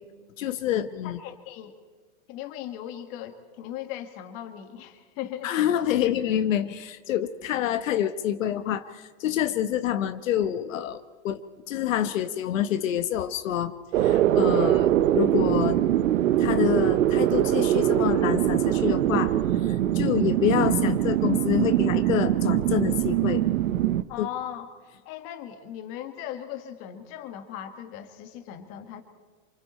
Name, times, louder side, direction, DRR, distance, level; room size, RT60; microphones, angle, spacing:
voice 1, 0.4-1.2 5.4-11.4 11.7-13.7 14.0-15.8 16.4-19.3 19.6-23.4 24.2-24.3, left 11 dB, 75° left, 9 dB, 1.3 m, -27 dB
voice 2, 1.0-1.7 2.3-5.5 24.1-29.0, left 11 dB, 35° left, 7 dB, 2.0 m, -38 dB
sound 1, 13.9-24.0, right 12 dB, 90° right, 1.1 m, -22 dB
28.0 x 27.0 x 4.5 m, 1.4 s
supercardioid pair, 170°, 39 cm